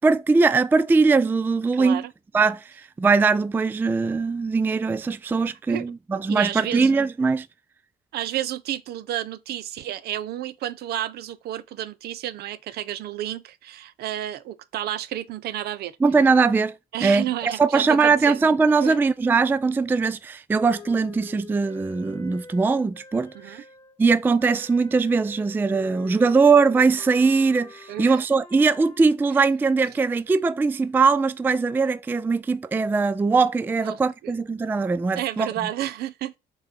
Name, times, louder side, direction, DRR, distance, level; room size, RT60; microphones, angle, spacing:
voice 1, 0.0-2.0 2.3-7.5 16.0-16.8 17.0-23.6 24.0-35.5, right 4 dB, 10° right, 0.3 m, -21 dB
voice 2, 1.7-2.1 5.7-5.8 6.3-6.9 8.1-16.0 16.9-18.4 18.8-19.0 23.3-23.6 27.9-28.2 33.8-34.3 35.2-36.4, right 12 dB, 70° right, 0.7 m, -31 dB
Wind instrument woodwind instrument, 20.7-24.0 24.4-29.0, left 4 dB, 15° left, 1.2 m, -46 dB
6.6 x 3.8 x 5.2 m
cardioid pair, 110°, 17 cm